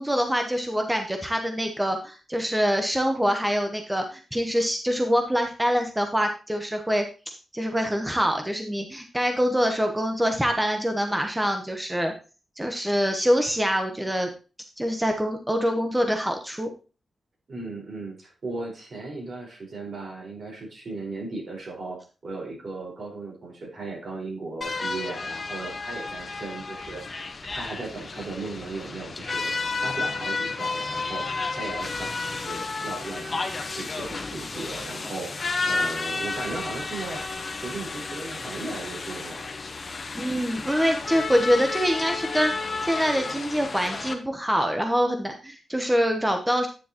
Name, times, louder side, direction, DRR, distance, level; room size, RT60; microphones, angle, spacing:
voice 1, 0.0-7.0 7.5-12.1 12.6-14.3 14.8-16.7 40.1-42.5 42.8-46.7, equal, 10° right, 4 dB, 1.0 m, -25 dB
voice 2, 17.5-37.2 37.6-39.5, right 3 dB, 60° right, -1 dB, 4.7 m, -37 dB
sound 1, 24.6-44.1, left 3 dB, 45° left, 1.2 m, -32 dB
9.8 x 6.9 x 3.0 m, 0.34 s
cardioid pair, 75°, 0 cm